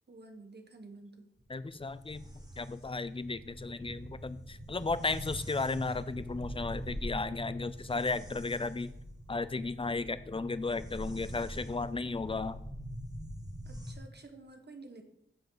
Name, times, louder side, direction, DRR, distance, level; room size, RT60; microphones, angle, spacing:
voice 1, 0.1-1.3 4.7-4.8 13.6-15.0, right 3 dB, 50° right, 5 dB, 1.5 m, -51 dB
sound 1, 1.4-13.9, equal, 15° right, 1.8 m, -44 dB
voice 2, 1.5-2.2 2.6-8.9 9.3-12.6, left 3 dB, 25° left, 15 dB, 0.5 m, -34 dB
15.5 x 5.4 x 4.0 m, 0.79 s
wide cardioid pair, 80°, 21 cm